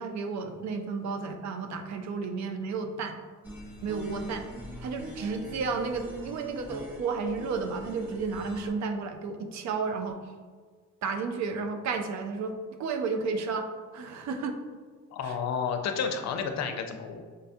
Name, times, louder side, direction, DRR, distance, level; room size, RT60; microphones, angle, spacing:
voice 1, 0.0-3.2 3.8-4.5 4.8-10.2 11.0-12.5 12.8-14.6 15.2-15.3, right 4 dB, 65° right, 6 dB, 0.5 m, -32 dB
sound 1, 3.4-8.7, equal, 5° right, 0.8 m, -42 dB
voice 2, 15.1-17.2, left 6 dB, 65° left, 6 dB, 0.5 m, -31 dB
5.2 x 2.1 x 2.6 m, 1.5 s
cardioid pair, 90°, 30 cm